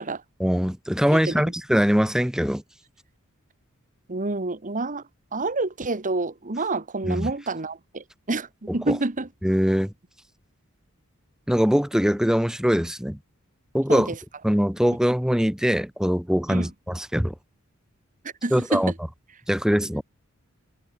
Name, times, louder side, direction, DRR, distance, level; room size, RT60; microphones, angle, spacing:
voice 1, 0.4-2.6 7.0-7.3 8.7-8.9 9.4-9.9 11.5-13.2 13.7-14.1 14.4-17.3 18.5-18.9 19.5-20.0, equal, 5° right, 1.3 m, -22 dB
voice 2, 1.1-1.4 4.1-5.0 5.3-9.3 13.9-14.2 16.5-16.7 18.4-18.8, right 2 dB, 35° right, 1.3 m, -28 dB
head